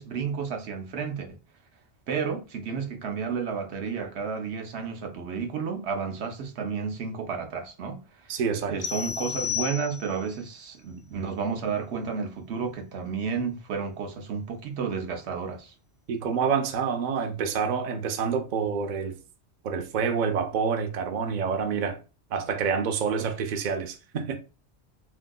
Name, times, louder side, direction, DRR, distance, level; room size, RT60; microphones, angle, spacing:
voice 1, 0.0-1.4 2.1-8.3 8.7-15.7 23.2-23.3, right 6 dB, 80° right, 0.9 m, -32 dB
voice 2, 8.3-8.8 16.1-19.2 19.6-22.0 22.3-24.4, right 6 dB, 55° right, 0.6 m, -27 dB
sound 1, 8.8-10.3, left 9 dB, 75° left, 0.8 m, -32 dB
3.5 x 2.7 x 2.2 m
omnidirectional pair, 1.1 m